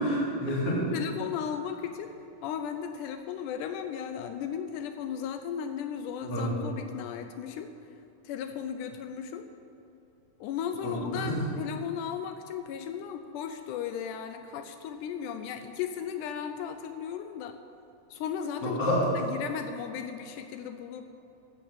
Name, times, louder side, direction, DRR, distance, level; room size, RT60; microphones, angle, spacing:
voice 1, 0.0-0.9 6.3-6.5 10.8-11.4 18.6-19.1, equal, 40° left, -6 dB, 3.7 m, -28 dB
voice 2, 0.9-2.1 2.4-7.7 8.2-9.5 10.4-17.6 18.1-18.8 19.1-21.0, left 8 dB, 85° left, 7 dB, 1.8 m, -35 dB
11.5 x 7.3 x 7.3 m, 2.8 s
omnidirectional pair, 4.2 m